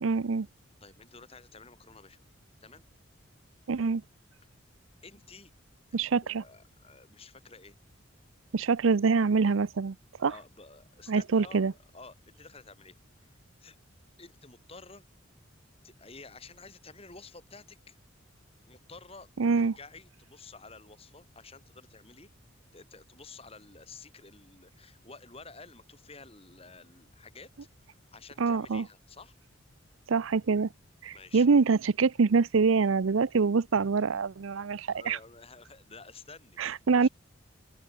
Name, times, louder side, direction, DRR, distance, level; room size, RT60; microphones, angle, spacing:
voice 1, 0.0-0.5 3.7-4.0 5.9-6.4 8.5-10.3 11.1-11.7 19.4-19.7 28.4-28.9 30.1-30.7 31.0-35.2 36.6-37.1, right 5 dB, 80° right, 0.6 m, -25 dB
voice 2, 0.8-2.3 2.6-2.9 5.0-5.5 5.9-7.7 10.3-11.7 11.9-12.9 13.6-13.8 14.2-15.0 15.8-18.0 18.7-19.3 19.6-22.3 22.7-27.5 27.9-29.3 31.1-31.5 34.9-36.6 36.9-37.1, left 4 dB, 30° left, 4.0 m, -51 dB
open air
head